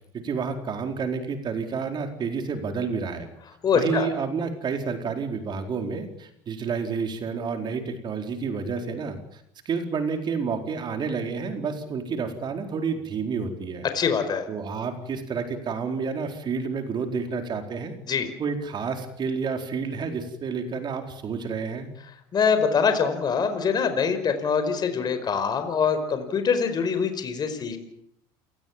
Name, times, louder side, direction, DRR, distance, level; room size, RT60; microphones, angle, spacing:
voice 1, 0.1-3.3 3.7-13.8 14.5-17.9 18.4-21.9, right 5 dB, 40° right, 5 dB, 4.4 m, -30 dB
voice 2, 3.6-4.1 13.9-14.5 18.1-18.3 22.3-27.8, left 6 dB, 35° left, 9 dB, 5.0 m, -24 dB
28.5 x 19.5 x 7.5 m, 0.72 s
supercardioid pair, 110°, 12 cm